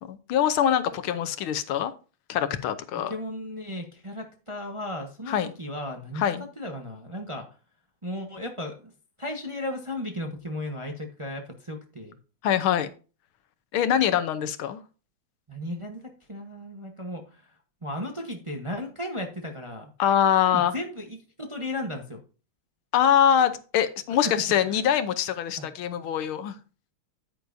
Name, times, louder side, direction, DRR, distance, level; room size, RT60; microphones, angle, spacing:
voice 1, 0.0-1.9 2.3-3.1 5.3-5.5 6.1-6.4 12.4-12.9 13.7-14.8 20.0-20.7 22.9-26.6, left 9 dB, 80° left, 11 dB, 1.6 m, -24 dB
voice 2, 3.1-6.2 6.6-7.5 8.0-8.9 9.2-12.2 15.5-19.9 20.4-22.2 24.2-24.3 24.7-24.8 25.6-25.7, left 1 dB, 20° right, 3 dB, 0.8 m, -35 dB
9.4 x 9.2 x 2.6 m, 0.35 s
omnidirectional pair, 2.4 m